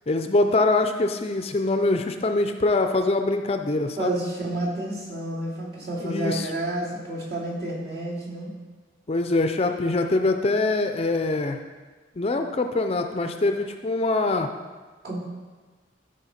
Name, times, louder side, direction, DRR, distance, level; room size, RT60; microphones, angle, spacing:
voice 1, 0.1-4.2 6.0-6.5 9.1-11.6 12.2-14.5, left 2 dB, 30° left, 6 dB, 0.4 m, -23 dB
voice 2, 4.0-8.5 15.0-15.2, right 1 dB, 55° right, -5 dB, 2.5 m, -30 dB
13.0 x 5.2 x 4.3 m, 1.3 s
head